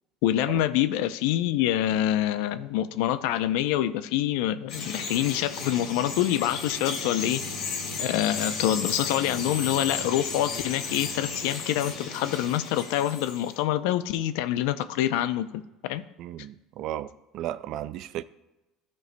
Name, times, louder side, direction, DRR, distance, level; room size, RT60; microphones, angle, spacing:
voice 1, 0.2-7.4 8.0-16.0, left 12 dB, 75° left, 0.5 m, -26 dB
Bird vocalization bird call bird song, 4.7-13.6, left 4 dB, 55° left, 1.7 m, -34 dB
voice 2, 16.2-18.2, right 12 dB, 45° right, 0.3 m, -35 dB
15.5 x 5.4 x 2.2 m
cardioid pair, 170°, 0 cm